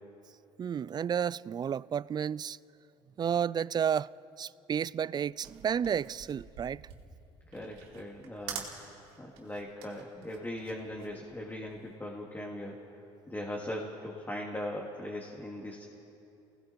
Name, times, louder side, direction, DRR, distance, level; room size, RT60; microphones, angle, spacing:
voice 1, 0.6-2.6 3.2-4.1 4.4-6.8, right 8 dB, 35° right, 0.4 m, -31 dB
sound 1, 5.4-11.9, right 7 dB, 90° right, 3.6 m, -46 dB
voice 2, 7.5-8.6 9.2-12.8 13.3-15.8, left 1 dB, 15° left, 3.1 m, -39 dB
30.0 x 19.5 x 4.7 m
supercardioid pair, 75°, 12 cm